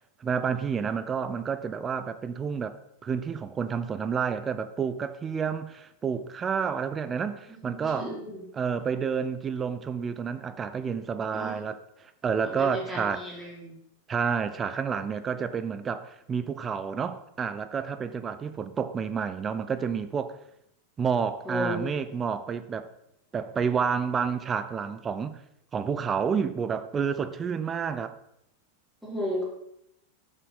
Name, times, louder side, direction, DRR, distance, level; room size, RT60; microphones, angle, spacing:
voice 1, 0.2-2.8 3.0-8.1 8.6-13.2 14.1-20.4 21.0-22.9 23.3-25.4 25.7-28.1, right 6 dB, 20° right, 0.8 m, -29 dB
voice 2, 7.5-8.4 11.3-11.6 12.4-13.8 21.4-21.9 29.0-29.5, equal, ahead, 5.2 m, -34 dB
12.5 x 7.3 x 5.9 m
figure-of-eight pair, 90°, 0 cm